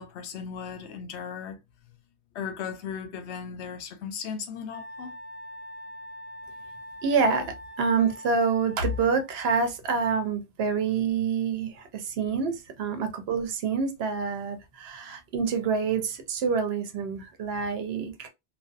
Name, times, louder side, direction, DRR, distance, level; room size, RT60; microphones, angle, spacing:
voice 1, 0.0-1.6 1.9-2.0 2.3-5.2 12.2-12.6 15.1-15.2, left 7 dB, 85° left, 0.9 m, -37 dB
Wind instrument woodwind instrument, 4.7-9.7, equal, 65° left, 1.2 m, -43 dB
voice 2, 7.0-18.3, right 5 dB, 70° right, 0.8 m, -27 dB
2.5 x 2.2 x 2.2 m
omnidirectional pair, 1.1 m